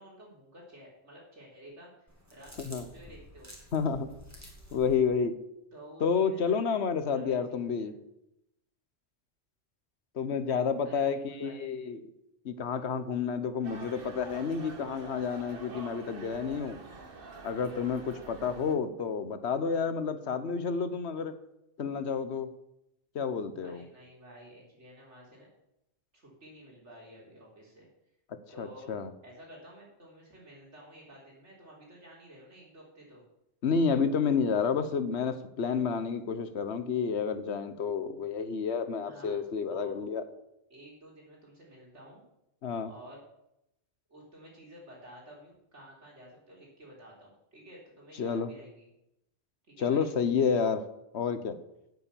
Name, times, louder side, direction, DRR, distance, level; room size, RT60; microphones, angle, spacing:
voice 1, 0.0-3.5 5.7-6.6 7.0-7.9 10.8-11.7 23.6-25.5 26.1-27.9 28.5-28.9 29.2-33.2 39.0-39.4 39.7-40.1 40.7-42.2 42.8-43.2 44.1-48.9 49.7-50.1, equal, 85° right, -3 dB, 4.2 m, -52 dB
sound 1, 2.1-5.0, equal, 15° right, 2.5 m, -50 dB
voice 2, 3.7-4.1 4.7-5.3 6.0-7.9 10.2-12.1 12.4-16.8 17.4-21.3 21.8-22.5 23.1-23.8 28.6-29.1 33.6-40.2 42.6-42.9 48.2-48.5 49.8-50.8 51.1-51.6, left 6 dB, 70° left, 11 dB, 1.2 m, -30 dB
sound 2, 13.6-18.7, right 3 dB, 55° right, 1.5 m, -46 dB
9.0 x 8.6 x 7.0 m, 0.83 s
omnidirectional pair, 1.2 m